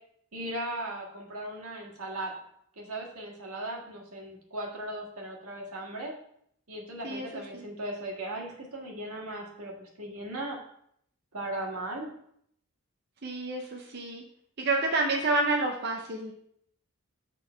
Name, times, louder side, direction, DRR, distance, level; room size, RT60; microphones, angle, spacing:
voice 1, 0.3-2.4 2.8-6.1 6.7-10.6 11.3-12.1, right 1 dB, 85° right, -1 dB, 1.6 m, -37 dB
voice 2, 7.0-7.6 13.2-14.2 14.6-16.3, right 2 dB, 45° right, 0 dB, 0.6 m, -29 dB
6.6 x 3.7 x 5.0 m, 0.70 s
head